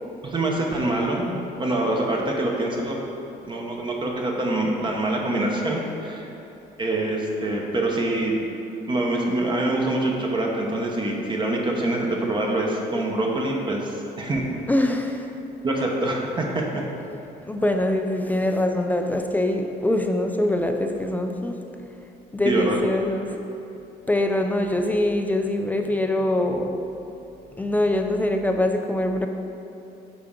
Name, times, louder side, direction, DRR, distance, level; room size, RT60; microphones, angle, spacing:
voice 1, 0.2-3.0 3.5-6.3 6.8-8.3 8.9-14.4 15.6-16.8 22.4-22.8, right 2 dB, 30° right, -1 dB, 0.9 m, -25 dB
voice 2, 14.7-15.3 17.5-21.6 22.3-23.4 24.1-26.7 27.6-29.3, left 1 dB, 10° left, 4 dB, 0.4 m, -23 dB
8.2 x 4.8 x 3.8 m, 2.8 s
cardioid pair, 110°, 17 cm